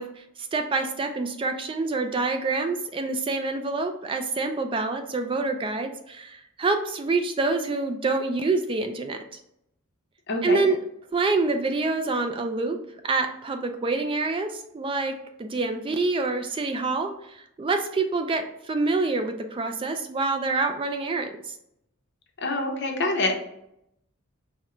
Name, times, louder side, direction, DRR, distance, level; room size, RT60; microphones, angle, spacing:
voice 1, 0.0-9.4 10.4-10.8 11.1-12.8 13.0-21.6, right 3 dB, 25° right, 6 dB, 0.3 m, -27 dB
voice 2, 10.3-10.6 22.4-23.4, left 2 dB, 55° left, 2 dB, 0.8 m, -26 dB
4.3 x 2.1 x 3.7 m, 0.78 s
head